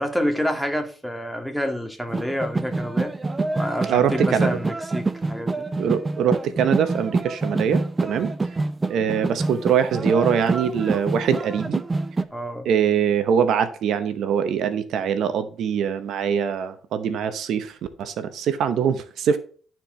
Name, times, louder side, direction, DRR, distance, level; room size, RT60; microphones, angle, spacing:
voice 1, 0.0-3.2 3.5-5.7 12.3-12.7, equal, ahead, 1.8 m, -28 dB
sound 1, 2.1-12.2, right 3 dB, 25° right, 0.6 m, -26 dB
voice 2, 3.9-4.5 5.8-8.3 8.9-11.8 12.7-17.7 18.0-19.4, right 8 dB, 75° right, 0.8 m, -23 dB
11.5 x 4.5 x 3.8 m
cardioid pair, 90°, 0 cm